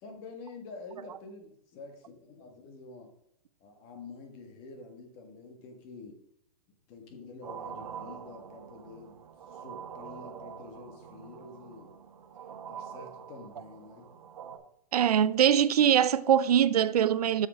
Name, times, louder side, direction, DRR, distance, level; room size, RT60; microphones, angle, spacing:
voice 1, 0.0-3.1 3.6-6.2 6.9-11.9 12.7-14.1, left 3 dB, 30° left, 1.6 m, -48 dB
sound 1, 7.4-14.6, right 7 dB, 65° right, 1.3 m, -45 dB
voice 2, 14.9-17.5, right 9 dB, 85° right, 0.5 m, -23 dB
7.1 x 6.7 x 5.0 m
hypercardioid pair, 155°, 19 cm